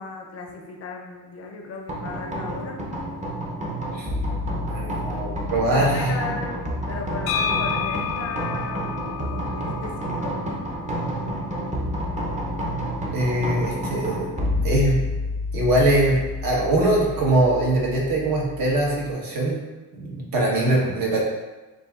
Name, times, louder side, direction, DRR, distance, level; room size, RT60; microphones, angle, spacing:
voice 1, 0.0-3.1 5.7-10.4, left 4 dB, 40° left, 2 dB, 0.5 m, -36 dB
sound 1, 1.9-19.1, equal, 20° right, 0.6 m, -29 dB
voice 2, 4.7-6.2 13.1-14.3 14.6-15.0 15.5-19.6 19.9-21.2, right 1 dB, 65° right, -3 dB, 1.3 m, -22 dB
sound 2, 7.3-11.0, left 8 dB, 90° left, 0.8 m, -30 dB
7.0 x 2.6 x 2.4 m, 1.2 s
cardioid pair, 150°, 37 cm